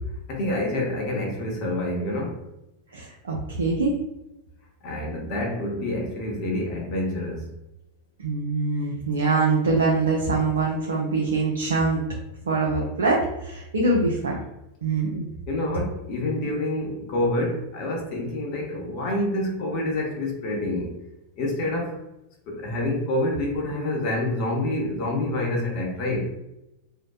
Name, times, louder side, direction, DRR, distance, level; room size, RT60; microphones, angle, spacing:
voice 1, 0.3-2.4 4.8-7.4 15.5-20.9 21.4-22.0 22.5-26.3, left 1 dB, 40° left, 1 dB, 0.7 m, -27 dB
voice 2, 2.9-4.0 8.2-12.0 12.5-14.4 14.8-15.2, right 3 dB, 70° right, -2 dB, 0.4 m, -24 dB
2.6 x 2.1 x 2.3 m, 0.92 s
figure-of-eight pair, 90°, 0 cm